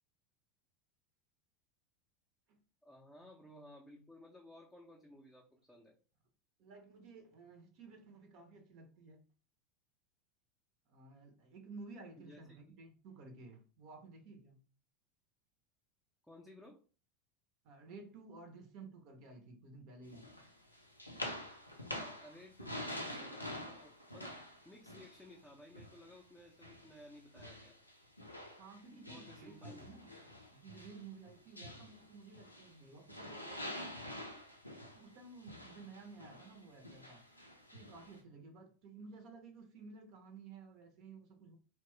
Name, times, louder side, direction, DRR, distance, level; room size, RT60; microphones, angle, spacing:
voice 1, 2.8-6.0 12.2-12.8 16.2-16.8 21.9-24.4 24.6-27.8 28.9-29.9, left 1 dB, 5° left, 0.5 m, -57 dB
voice 2, 6.6-9.2 10.9-14.6 17.6-20.3 28.6-30.1 30.5-34.3 35.0-37.3 37.7-41.6, right 4 dB, 45° right, 0.7 m, -54 dB
sound 1, 20.1-26.2 26.6-32.8 33.1-38.2, left 1 dB, 90° left, 0.4 m, -47 dB
2.9 x 2.2 x 3.1 m
figure-of-eight pair, 80°, 0 cm